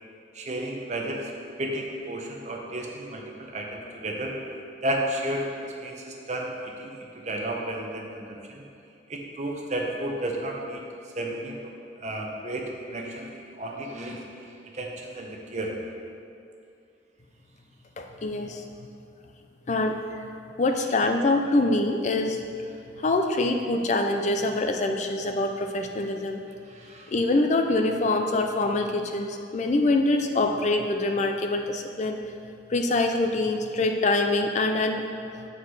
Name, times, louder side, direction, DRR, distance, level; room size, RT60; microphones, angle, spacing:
voice 1, 0.3-1.3 1.6-4.4 4.8-8.6 9.1-10.8 11.1-15.8 26.7-27.1, right 1 dB, 35° right, 0 dB, 0.8 m, -33 dB
voice 2, 18.0-18.6 19.7-20.3 20.6-22.4 23.0-26.4 27.1-32.2 32.7-35.0, left 2 dB, 35° left, 5 dB, 0.4 m, -25 dB
8.2 x 4.7 x 4.7 m, 2.5 s
head